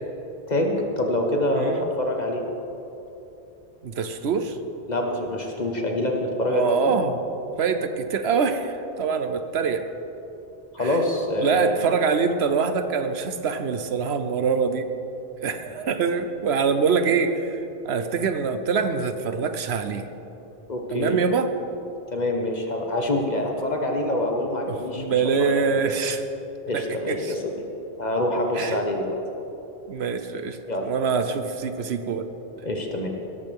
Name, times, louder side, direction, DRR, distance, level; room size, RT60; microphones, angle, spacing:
voice 1, 0.5-2.4 4.9-7.0 10.7-11.8 20.7-21.2 22.1-25.2 26.7-27.5 28.0-29.2 30.7-30.9 32.6-33.1, left 1 dB, 40° left, 1 dB, 1.5 m, -25 dB
voice 2, 1.5-1.8 3.8-4.6 6.5-7.2 7.6-9.9 10.8-11.0 11.4-14.9 15.4-17.6 17.8-20.1 20.9-21.5 24.7-26.2 26.7-27.3 28.5-28.8 29.9-32.3, right 5 dB, 75° right, 9 dB, 1.1 m, -24 dB
17.5 x 13.5 x 3.6 m, 2.9 s
omnidirectional pair, 1.1 m